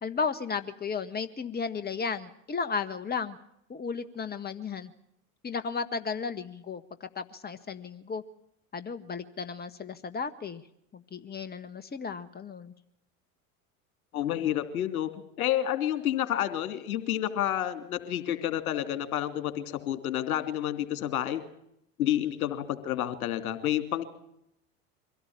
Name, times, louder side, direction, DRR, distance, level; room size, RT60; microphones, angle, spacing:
voice 1, 0.0-3.4 3.7-4.9 5.4-8.2 8.7-10.6 10.9-12.7, left 5 dB, 20° left, 12 dB, 1.7 m, -34 dB
voice 2, 14.1-15.1 15.4-21.4 22.0-24.0, left 11 dB, 75° left, 10 dB, 3.0 m, -29 dB
24.5 x 17.5 x 8.7 m, 0.75 s
hypercardioid pair, 75°, 42 cm